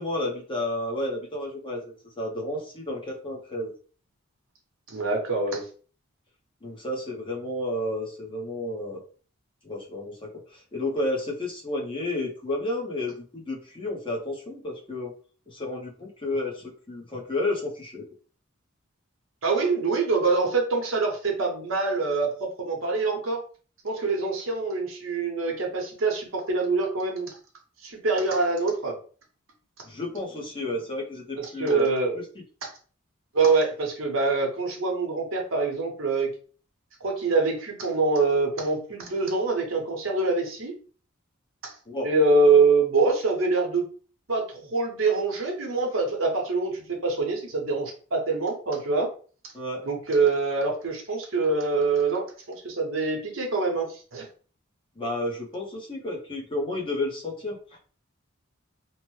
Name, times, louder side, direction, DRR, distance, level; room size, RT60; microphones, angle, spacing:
voice 1, 0.0-3.7 6.6-9.0 9.6-15.1 15.5-18.0 29.8-31.8 32.1-32.2 41.9-42.1 49.5-49.9 55.0-57.6, left 1 dB, 25° left, -2 dB, 0.7 m, -31 dB
voice 2, 4.9-5.6 19.4-23.4 23.8-27.3 27.8-29.0 31.4-32.2 32.6-32.7 33.3-36.3 37.0-40.7 41.6-41.7 42.0-43.8 44.3-49.1 49.8-54.3, right 3 dB, 70° right, 1 dB, 0.8 m, -25 dB
2.9 x 2.1 x 3.1 m, 0.40 s
head